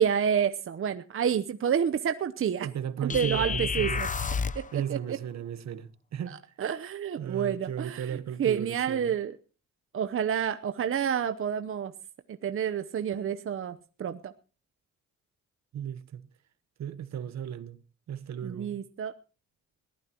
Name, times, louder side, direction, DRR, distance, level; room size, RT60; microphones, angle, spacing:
voice 1, 0.0-2.7 3.0-4.1 4.5-5.2 6.3-9.4 9.9-11.9 12.3-14.3 18.4-19.1, right 8 dB, 45° right, 0.9 m, -29 dB
voice 2, 2.6-4.1 4.7-6.3 7.2-9.1 15.7-16.2 16.8-17.8 18.1-18.8, right 9 dB, 60° right, 1.3 m, -35 dB
sound 1, 3.1-4.7, left 5 dB, 25° left, 0.7 m, -30 dB
21.5 x 14.5 x 3.0 m
cardioid pair, 90°, 30 cm